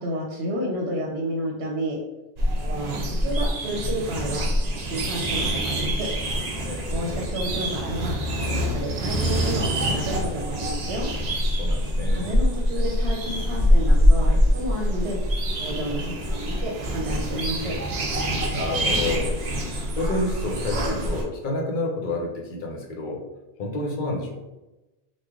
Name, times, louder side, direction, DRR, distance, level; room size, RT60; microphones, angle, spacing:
voice 1, 0.0-2.0 2.6-6.1 6.9-8.2 8.5-11.1 12.1-15.2 15.6-17.8, equal, 85° right, -1 dB, 0.9 m, -31 dB
sound 1, 2.4-21.2, equal, 50° right, 0.5 m, -24 dB
voice 2, 6.6-7.2 11.6-12.3 18.5-19.6 19.9-23.2 23.6-24.4, left 2 dB, 55° left, 0 dB, 0.8 m, -29 dB
3.1 x 2.1 x 3.5 m, 1.0 s
omnidirectional pair, 1.1 m